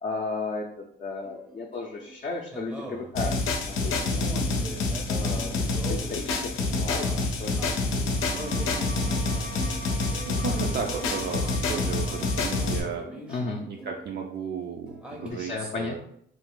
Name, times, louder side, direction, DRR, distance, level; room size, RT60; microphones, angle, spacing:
voice 1, 0.0-3.3 3.6-4.3 5.1-5.6 5.9-7.6 13.3-13.6 15.2-16.0, left 3 dB, 40° left, 0 dB, 0.4 m, -34 dB
sound 1, 1.2-14.3 14.6-15.3, right 1 dB, 5° right, 0.6 m, -42 dB
sound 2, 3.2-12.8, left 3 dB, 85° left, 0.6 m, -27 dB
sound 3, 8.1-12.9, right 2 dB, 80° right, 0.9 m, -43 dB
voice 2, 8.3-8.9 10.2-13.1 13.7-16.0, right 6 dB, 55° right, 1 dB, 0.4 m, -35 dB
2.5 x 2.3 x 3.6 m, 0.69 s
cardioid pair, 90°, 20 cm